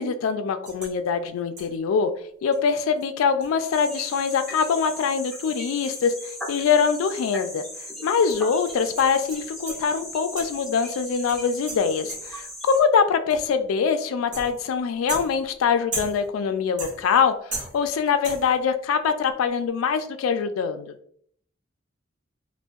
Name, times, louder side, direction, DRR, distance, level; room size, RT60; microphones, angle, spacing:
voice 1, 0.0-2.1 2.4-6.1 6.5-7.6 8.0-20.9, left 6 dB, 85° left, 10 dB, 0.3 m, -23 dB
sound 1, 0.6-1.0 1.6-1.9 2.5-2.6 3.0-3.1 3.4-7.2 7.4-7.5 8.3-9.9 10.4-10.7 11.3-12.5 13.3-13.6 14.3-14.7 15.1-16.4 16.8-17.2 17.5-18.0 18.2-18.6, right 2 dB, 40° right, 0.7 m, -38 dB
sound 2, 3.7-12.8, left 1 dB, ahead, 0.5 m, -38 dB
2.6 x 2.1 x 2.3 m, 0.62 s
head